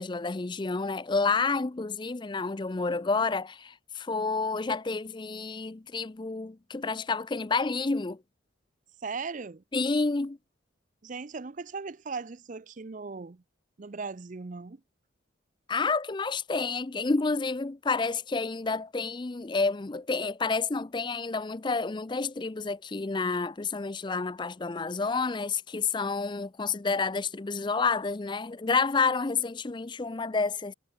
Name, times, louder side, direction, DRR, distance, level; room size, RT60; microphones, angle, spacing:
voice 1, 0.0-8.2 9.7-10.4 15.7-30.7, left 4 dB, 25° left, 0.4 m, -29 dB
voice 2, 9.0-9.6 11.0-13.4 13.8-14.8, right 4 dB, 40° right, 0.5 m, -38 dB
head